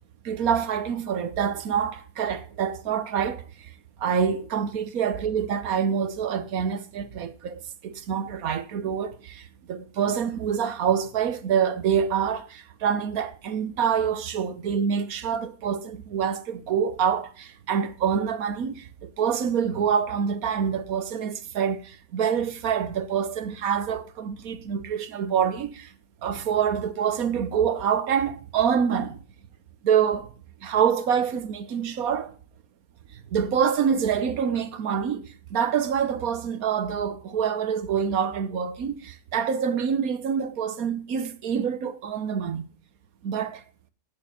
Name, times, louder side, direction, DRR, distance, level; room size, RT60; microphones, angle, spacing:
voice 1, 0.2-3.4 4.0-18.7 19.0-25.9 26.2-29.2 29.8-30.3 30.6-32.3 33.3-35.2 35.5-42.7 43.2-43.6, right 7 dB, 65° right, 1.3 m, -26 dB
8.7 x 7.0 x 6.8 m
omnidirectional pair, 1.7 m